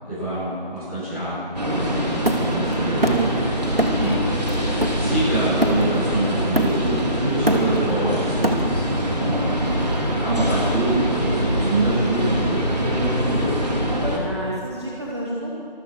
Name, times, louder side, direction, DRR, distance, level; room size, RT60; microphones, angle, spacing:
voice 1, 0.0-4.3 4.9-9.3 10.2-13.5, right 1 dB, ahead, -23 dB, 4.2 m, -26 dB
sound 1, 1.6-14.2, right 1 dB, 45° right, 3.6 m, -23 dB
Hammer, 2.3-3.4 3.8-4.1 4.5-6.1 6.6-7.0 7.3-9.0, right 1 dB, 75° right, 2.9 m, -24 dB
voice 2, 4.0-4.4 9.3-10.2 14.1-15.5, right 1 dB, 30° right, -5 dB, 2.3 m, -32 dB
26.0 x 15.5 x 6.9 m, 2.4 s
figure-of-eight pair, 170°, 29 cm